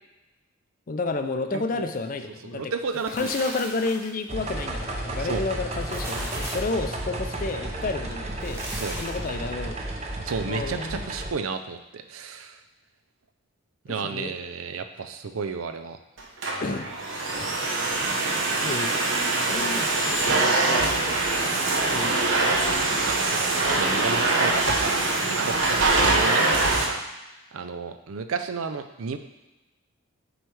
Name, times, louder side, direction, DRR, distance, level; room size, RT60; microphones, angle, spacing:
voice 1, 0.9-2.7 3.1-8.6 9.0-10.2 10.5-11.0 13.9-14.3 16.6-16.9 17.4-17.5 18.6-21.2 21.9-22.2 25.7-25.9, left 3 dB, 40° left, 7 dB, 0.4 m, -31 dB
voice 2, 1.5-1.9 2.5-3.3 5.2-5.4 8.7-8.9 10.2-12.6 13.8-16.0 23.0-27.0 27.5-29.2, right 5 dB, 80° right, 9 dB, 0.5 m, -32 dB
sound 1, 2.8-4.2 5.7-6.8 8.3-9.3, right 1 dB, 10° right, 1.1 m, -37 dB
sound 2, 4.3-11.3, right 2 dB, 30° right, 0.7 m, -33 dB
Domestic sounds home sounds, 16.2-26.9, right 2 dB, 65° right, 0.9 m, -23 dB
7.7 x 3.2 x 4.7 m, 1.0 s
head